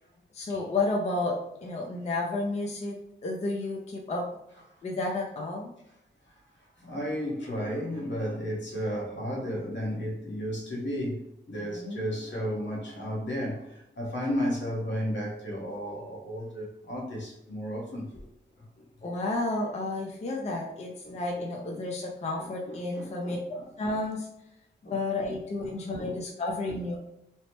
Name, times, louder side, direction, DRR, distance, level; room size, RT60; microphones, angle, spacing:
voice 1, 0.3-3.0 3.2-4.3 4.8-5.7 11.7-12.1 19.0-23.4 23.8-24.3 24.8-27.0, left 2 dB, 35° left, 0.4 m, -31 dB
voice 2, 6.3-18.3 18.6-19.2 20.5-20.6 21.0-21.8 22.4-23.6 24.8-25.0 25.6-26.2 26.6-26.8, equal, 75° left, 0.9 m, -34 dB
2.9 x 2.0 x 3.0 m
wide cardioid pair, 125°, 19 cm